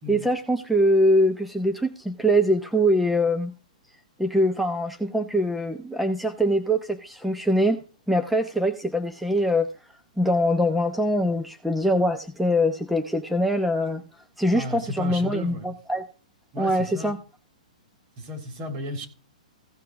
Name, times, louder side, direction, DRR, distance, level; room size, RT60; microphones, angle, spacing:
voice 1, 0.1-3.5 4.2-7.8 8.1-9.7 10.2-14.0 14.4-16.0 16.6-17.2, equal, ahead, 0.8 m, -23 dB
voice 2, 14.5-15.7 16.5-17.1 18.2-19.1, left 1 dB, 40° right, 3.8 m, -34 dB
16.0 x 5.8 x 4.8 m
hypercardioid pair, 135°, 4 cm